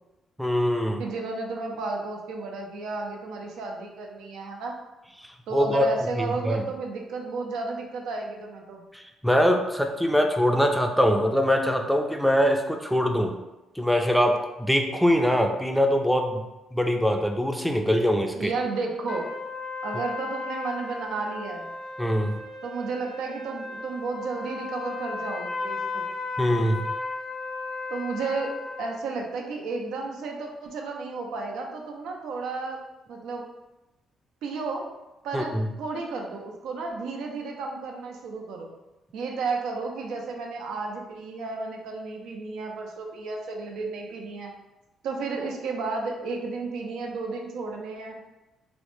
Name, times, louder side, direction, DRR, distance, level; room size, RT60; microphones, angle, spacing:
voice 1, 0.4-1.0 5.5-5.9 6.2-6.7 8.9-13.4 13.8-18.5 22.0-22.4 26.4-26.8 35.3-35.7, equal, ahead, 3 dB, 0.4 m, -23 dB
voice 2, 1.0-4.8 5.5-8.8 18.3-19.3 19.8-21.7 22.6-26.0 27.9-32.8 33.1-33.4 34.4-34.8 35.2-35.5 35.8-38.7 39.1-44.5 45.0-48.2, right 3 dB, 85° right, 1 dB, 0.5 m, -32 dB
sound 1, 19.1-29.0, left 4 dB, 65° left, 0.5 m, -35 dB
3.1 x 2.1 x 3.0 m, 1.0 s
cardioid pair, 90°, 0 cm